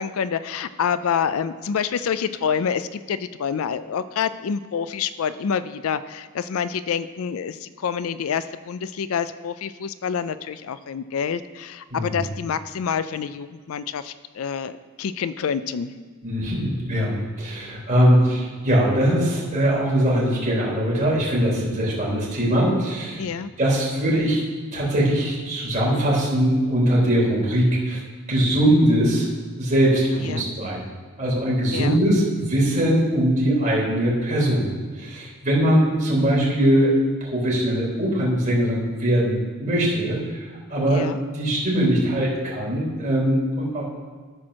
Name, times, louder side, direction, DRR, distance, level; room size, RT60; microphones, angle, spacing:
voice 1, 0.0-15.9 23.2-23.5 30.2-30.4 31.7-32.0 40.9-41.2, left 7 dB, 70° left, 13 dB, 0.4 m, -27 dB
voice 2, 16.2-23.2 23.6-24.4 24.7-28.0 28.3-29.3 29.6-30.8 31.2-41.1 41.3-43.8, equal, 35° right, -5 dB, 3.5 m, -21 dB
13.0 x 4.5 x 6.3 m, 1.5 s
head